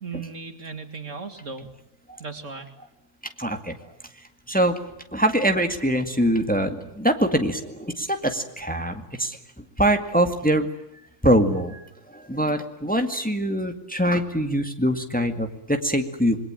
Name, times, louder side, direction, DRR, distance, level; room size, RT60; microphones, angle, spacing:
voice 1, 0.0-1.7 2.2-2.7, right 4 dB, 65° right, 7 dB, 2.9 m, -36 dB
voice 2, 3.4-3.8 4.5-4.8 5.1-10.7 11.2-16.4, right 1 dB, 5° left, 6 dB, 2.0 m, -23 dB
27.0 x 22.5 x 9.0 m, 0.83 s
omnidirectional pair, 1.4 m